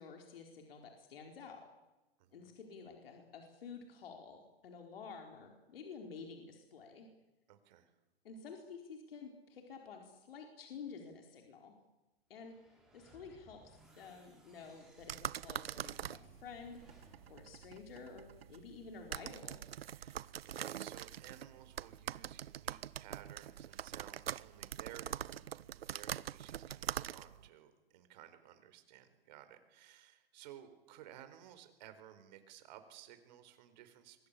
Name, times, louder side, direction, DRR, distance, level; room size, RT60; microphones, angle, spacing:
voice 1, 0.0-1.6 2.3-7.1 8.2-11.8 12.3-19.6, left 5 dB, 70° left, 2 dB, 4.6 m, -51 dB
voice 2, 2.2-2.6 7.5-7.9 19.9-34.3, right 11 dB, 45° right, 9 dB, 4.4 m, -56 dB
sound 1, 12.4-18.6, right 1 dB, ahead, 6.2 m, -65 dB
sound 2, 15.0-27.5, right 10 dB, 80° right, 0.8 m, -44 dB
27.0 x 23.0 x 8.4 m, 1.0 s
hypercardioid pair, 145°, 30 cm